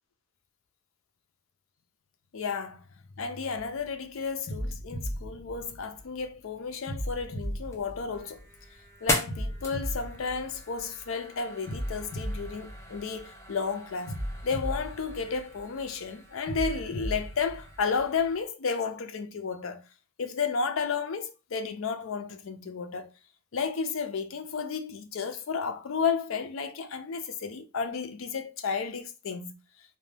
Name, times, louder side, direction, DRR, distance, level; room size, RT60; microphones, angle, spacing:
voice 1, 2.3-2.8 3.2-8.5 9.0-19.8 20.2-23.1 23.5-29.6, left 5 dB, 75° left, 0.5 m, -32 dB
sound 1, 3.6-3.9 4.5-6.3 6.9-8.7 9.3-11.1 11.7-13.5 14.1-15.9 16.5-18.3, equal, 50° left, 0.8 m, -36 dB
sound 2, 7.4-18.4, left 1 dB, 15° left, 0.5 m, -40 dB
2.6 x 2.1 x 3.2 m
head